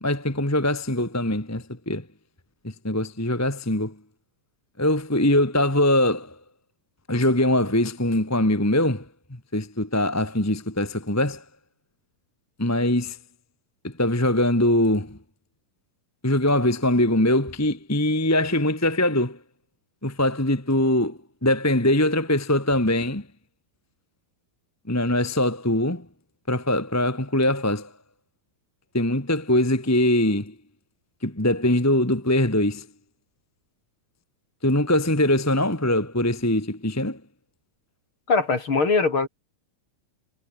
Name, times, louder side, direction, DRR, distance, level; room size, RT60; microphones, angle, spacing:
voice 1, 0.0-2.0 2.6-3.9 4.8-6.3 7.1-9.0 9.5-11.4 12.6-13.2 13.8-15.2 16.2-19.4 20.0-23.2 24.9-26.0 26.5-27.9 28.9-30.5 31.2-32.8 34.6-37.2, left 1 dB, 5° left, 1.4 m, -22 dB
voice 2, 38.3-39.3, left 4 dB, 35° left, 4.0 m, -21 dB
omnidirectional pair, 4.3 m